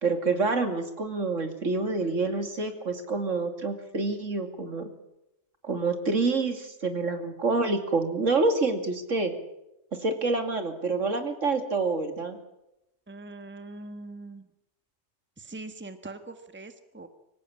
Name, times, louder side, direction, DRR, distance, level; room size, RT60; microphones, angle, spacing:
voice 1, 0.0-4.9 5.6-9.3 10.0-12.4, right 3 dB, 75° right, 6 dB, 2.9 m, -27 dB
voice 2, 13.1-14.4 15.4-17.1, right 2 dB, 10° right, 9 dB, 1.3 m, -42 dB
24.5 x 16.0 x 8.7 m, 0.88 s
omnidirectional pair, 1.3 m